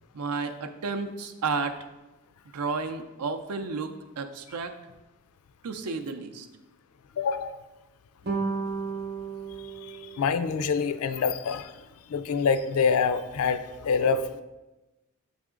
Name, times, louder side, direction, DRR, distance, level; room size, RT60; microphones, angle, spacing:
voice 1, 0.1-1.8 2.5-4.7 5.6-6.5, right 4 dB, 90° right, 7 dB, 0.5 m, -32 dB
voice 2, 7.2-7.6 9.8-11.7 12.1-14.4, left 5 dB, 70° left, 12 dB, 0.4 m, -26 dB
sound 1, 8.2-10.8, right 4 dB, 45° right, 0.8 m, -33 dB
7.7 x 3.5 x 3.7 m, 1.1 s
head